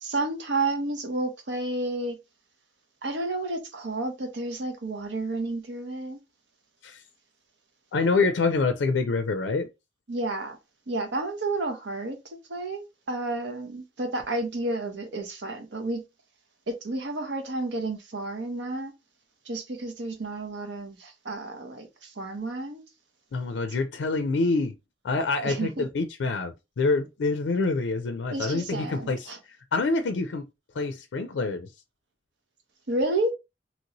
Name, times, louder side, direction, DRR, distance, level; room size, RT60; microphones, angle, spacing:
voice 1, 0.0-2.2 3.0-6.2 10.1-10.6 10.9-12.2 12.5-16.0 16.7-18.9 19.5-22.8 25.4-25.9 28.3-29.4 32.9-33.3, right 2 dB, 70° right, 0.8 m, -31 dB
voice 2, 7.9-9.7 23.3-24.8 25.0-29.3 29.7-30.4 30.7-31.7, left 3 dB, 90° left, 0.4 m, -26 dB
2.9 x 2.6 x 2.9 m
head